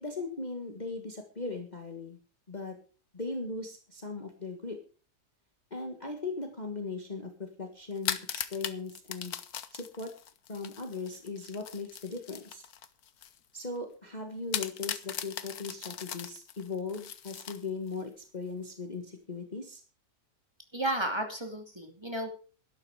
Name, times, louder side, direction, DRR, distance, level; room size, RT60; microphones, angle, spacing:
voice 1, 0.0-2.2 2.5-2.8 3.1-4.8 5.7-9.4 9.7-10.1 10.5-12.6 13.5-19.8, left 3 dB, 25° left, 4 dB, 1.7 m, -38 dB
sound 1, 7.9-13.4 13.8-13.9 14.5-18.0, left 9 dB, 65° left, 1.4 m, -39 dB
voice 2, 20.7-22.3, right 1 dB, 15° right, 4 dB, 2.7 m, -33 dB
12.5 x 12.0 x 4.8 m, 0.38 s
omnidirectional pair, 1.8 m